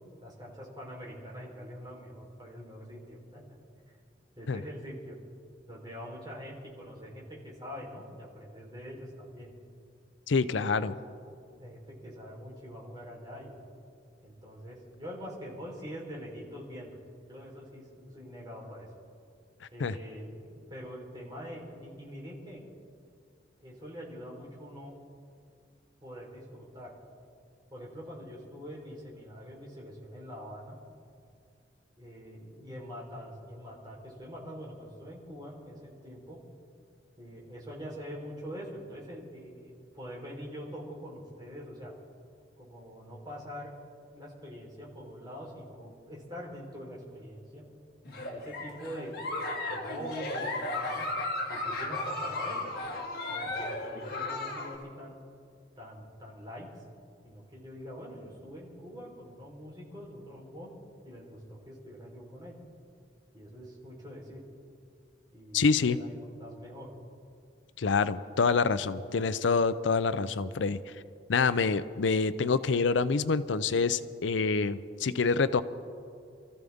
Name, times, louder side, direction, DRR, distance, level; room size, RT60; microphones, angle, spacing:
voice 1, 0.2-3.4 4.4-5.2 5.7-9.5 10.6-10.9 11.3-13.6 14.2-17.0 17.3-18.9 19.7-22.7 23.6-25.0 26.0-26.9 27.7-30.8 32.0-36.4 37.2-41.9 42.6-43.8 44.1-47.6 48.3-51.1 51.5-52.7 53.3-55.2 55.8-56.7 57.2-60.7 61.0-62.6 63.3-64.4 65.3-66.9, equal, 25° right, -3 dB, 3.8 m, -44 dB
voice 2, 10.3-10.9 19.8-20.0 65.5-66.0 67.8-70.8 71.3-75.6, left 4 dB, 85° left, 14 dB, 0.5 m, -26 dB
Giggle, 48.0-54.7, left 2 dB, 55° left, 2.2 m, -35 dB
28.0 x 14.5 x 3.6 m, 2.3 s
head